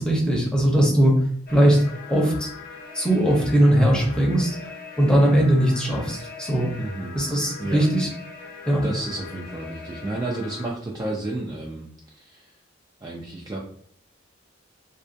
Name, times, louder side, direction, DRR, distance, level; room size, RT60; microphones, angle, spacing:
voice 1, 0.0-2.5 2.9-6.7 7.1-8.1 8.7-8.8, right 1 dB, 5° left, -2 dB, 0.6 m, -20 dB
sound 1, 1.5-10.7, left 4 dB, 50° left, 0.4 m, -41 dB
voice 2, 6.8-7.2 7.6-7.8 8.8-11.9 12.1-12.5 13.0-13.6, right 2 dB, 20° right, -3 dB, 0.3 m, -31 dB
2.6 x 2.3 x 2.4 m, 0.63 s
head